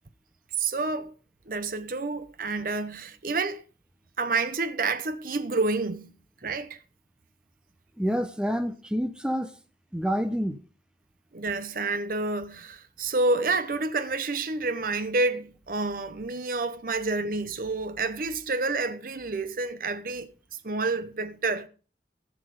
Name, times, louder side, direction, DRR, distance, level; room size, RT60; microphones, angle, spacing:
voice 1, 0.6-1.1 1.5-3.6 4.2-6.1 6.4-6.8 11.3-20.3 20.6-21.7, right 3 dB, 50° right, 0.8 m, -29 dB
voice 2, 8.0-9.5 9.9-10.6, equal, 5° right, 0.7 m, -28 dB
13.0 x 6.6 x 5.2 m
head